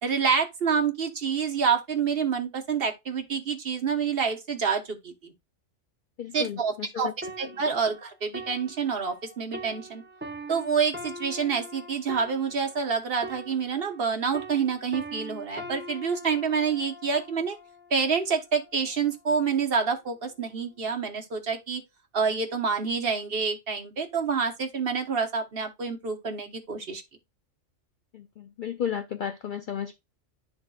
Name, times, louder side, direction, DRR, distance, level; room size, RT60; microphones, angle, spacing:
voice 1, 0.0-5.3 6.3-7.1 7.4-10.0 10.5-17.6 17.9-21.8 22.1-27.0, right 6 dB, 50° right, 1.2 m, -27 dB
voice 2, 6.2-7.1 28.1-30.0, left 9 dB, 60° left, 0.5 m, -33 dB
sound 1, 7.2-14.1 14.3-17.9 18.6-18.8, right 1 dB, 20° right, 0.3 m, -42 dB
11.5 x 3.8 x 2.3 m
omnidirectional pair, 1.3 m